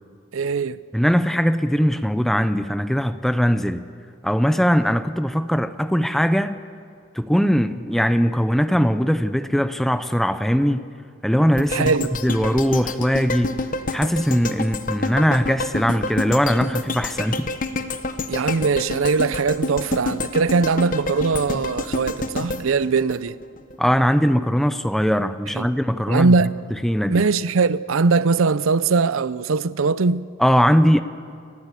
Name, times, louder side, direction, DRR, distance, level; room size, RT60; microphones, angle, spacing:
voice 1, 0.3-0.8 11.7-12.1 18.3-23.4 25.5-25.7 26.1-26.6 27.1-30.3, right 4 dB, 90° right, 0.6 m, -21 dB
voice 2, 0.9-3.8 4.2-6.6 7.1-10.9 11.2-11.9 12.2-13.6 13.9-17.5 23.8-26.3 26.8-27.2 30.4-31.0, equal, ahead, 0.7 m, -20 dB
sound 1, 11.6-23.8 24.2-24.3, left 2 dB, 40° left, 1.1 m, -28 dB
29.5 x 14.5 x 8.4 m
head